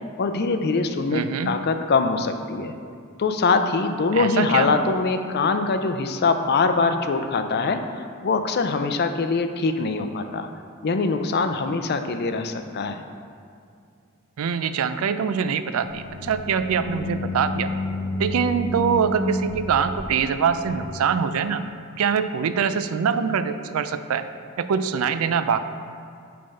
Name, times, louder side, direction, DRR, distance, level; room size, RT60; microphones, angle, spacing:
voice 1, 0.2-2.8 3.2-7.8 8.2-10.5 10.8-13.0, left 4 dB, 50° left, 7 dB, 0.5 m, -23 dB
voice 2, 1.1-1.6 4.1-4.7 14.4-17.7 18.2-21.6 22.0-24.2 24.6-25.6, right 6 dB, 85° right, 11 dB, 0.4 m, -24 dB
sound 1, 15.8-20.9, left 2 dB, 35° right, 1.6 m, -31 dB
8.8 x 3.5 x 5.3 m, 2.3 s
head